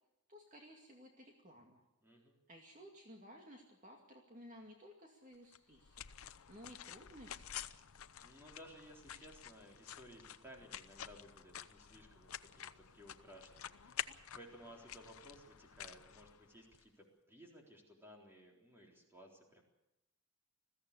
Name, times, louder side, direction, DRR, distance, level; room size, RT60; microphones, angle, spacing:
voice 1, 0.3-1.8 2.5-6.0 6.5-7.7, equal, 35° right, 1 dB, 2.2 m, -56 dB
voice 2, 2.0-2.4 8.2-19.6, equal, 10° right, 0 dB, 3.8 m, -58 dB
sound 1, 5.5-16.8, left 10 dB, 85° left, 0.7 m, -50 dB
21.0 x 15.0 x 8.3 m, 0.93 s
head